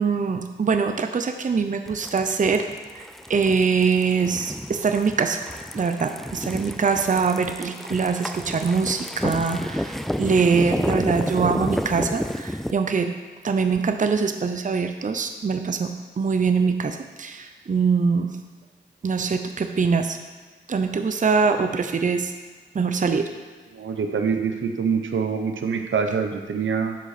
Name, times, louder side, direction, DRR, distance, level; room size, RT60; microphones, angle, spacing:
voice 1, 0.0-2.7 3.3-5.4 5.7-13.1 13.4-18.3 19.0-20.2 20.7-22.3 22.7-23.3, right 5 dB, 40° right, 7 dB, 0.6 m, -23 dB
sound 1, 1.9-12.7, equal, ahead, 0.4 m, -30 dB
voice 2, 23.7-27.0, right 6 dB, 75° right, 5 dB, 0.8 m, -25 dB
10.5 x 5.6 x 4.2 m, 1.4 s
cardioid pair, 50°, 20 cm